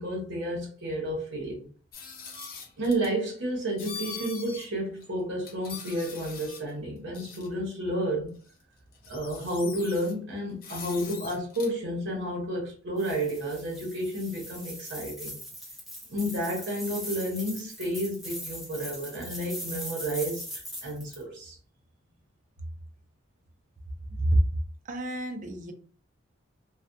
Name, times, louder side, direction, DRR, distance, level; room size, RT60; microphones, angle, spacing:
voice 1, 0.0-1.7 2.8-8.3 9.1-15.4 16.1-20.5 20.8-21.6, right 1 dB, 65° right, 0.9 m, -31 dB
sound 1, 1.9-3.1 3.8-4.7 5.0-5.1 5.4-6.7 7.1-7.5 8.5-8.6 8.9-10.1 10.6-11.7, left 5 dB, 50° left, 0.5 m, -42 dB
sound 2, 13.0-21.2, equal, ahead, 0.7 m, -40 dB
voice 2, 24.9-25.7, right 1 dB, 40° right, 0.5 m, -26 dB
2.6 x 2.3 x 2.2 m
head